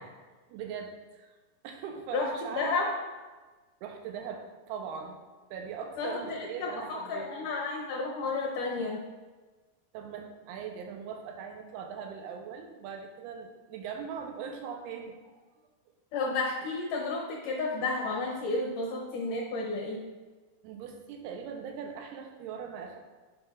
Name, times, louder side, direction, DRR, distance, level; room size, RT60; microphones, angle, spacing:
voice 1, 0.5-1.3 1.6-2.8 3.8-5.2 5.5-7.5 9.9-15.4 15.9-16.0 20.6-23.0, right 6 dB, 85° right, 3 dB, 2.7 m, -40 dB
voice 2, 2.1-2.9 6.0-9.0 16.1-20.0, left 3 dB, 75° left, -2 dB, 2.0 m, -32 dB
10.5 x 6.4 x 2.4 m, 1.3 s
omnidirectional pair, 4.6 m